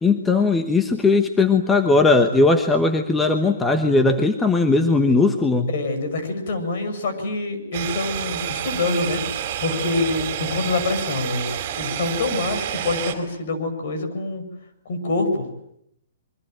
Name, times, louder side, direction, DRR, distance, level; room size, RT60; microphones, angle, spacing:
voice 1, 0.0-5.7, left 3 dB, 5° left, 6 dB, 1.1 m, -18 dB
voice 2, 5.7-14.4 14.8-15.5, left 3 dB, 50° left, 8 dB, 6.5 m, -26 dB
sound 1, 7.7-13.1, right 10 dB, 30° right, 4.4 m, -29 dB
27.0 x 24.0 x 9.1 m, 0.75 s
hypercardioid pair, 170°, 0 cm